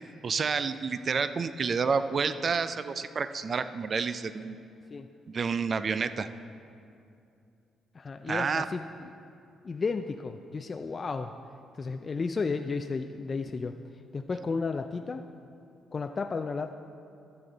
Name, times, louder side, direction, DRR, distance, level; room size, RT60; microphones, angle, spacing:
voice 1, 0.2-4.6 5.3-6.3 8.3-8.7, right 5 dB, 45° right, 12 dB, 0.4 m, -29 dB
voice 2, 7.9-9.1 9.6-11.3 11.7-13.8 14.1-15.3 15.9-16.7, left 4 dB, 35° left, 7 dB, 0.3 m, -33 dB
13.5 x 6.9 x 4.0 m, 2.5 s
cardioid pair, 90°, 0 cm